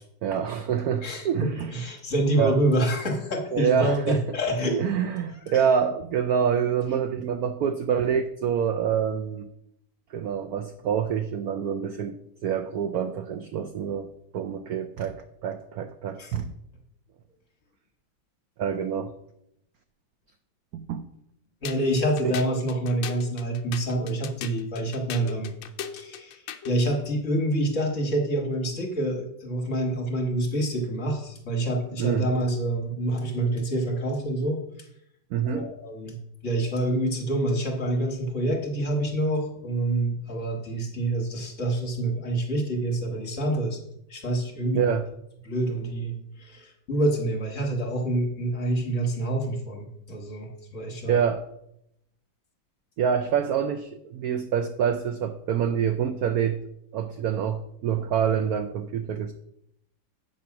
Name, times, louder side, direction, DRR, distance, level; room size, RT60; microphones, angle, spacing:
voice 1, 0.2-1.7 2.4-2.6 3.5-4.2 4.7-9.5 10.1-16.5 18.6-19.1 20.7-21.1 22.2-22.4 32.0-32.3 35.3-35.7 44.7-45.0 51.1-51.4 53.0-56.6 56.9-59.3, right 8 dB, 80° right, 9 dB, 0.8 m, -26 dB
voice 2, 1.0-4.8 16.2-16.3 21.6-25.5 25.9-34.6 35.4-36.1 36.4-43.8 44.1-44.9 45.4-51.2, right 1 dB, 40° left, 1 dB, 1.5 m, -27 dB
sound 1, 21.6-26.8, left 9 dB, 80° left, 1.4 m, -39 dB
7.7 x 5.7 x 5.8 m, 0.77 s
omnidirectional pair, 2.1 m